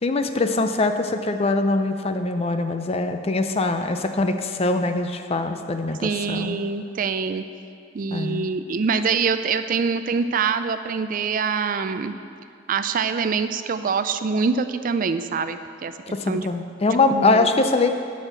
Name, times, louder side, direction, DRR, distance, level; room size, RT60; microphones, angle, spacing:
voice 1, 0.0-6.6 8.1-8.5 16.1-17.9, left 3 dB, 35° left, 7 dB, 0.5 m, -23 dB
voice 2, 6.0-7.4 7.9-12.2 12.7-16.5 16.8-17.5, right 5 dB, 45° right, 10 dB, 0.4 m, -25 dB
9.5 x 6.4 x 6.7 m, 2.4 s
head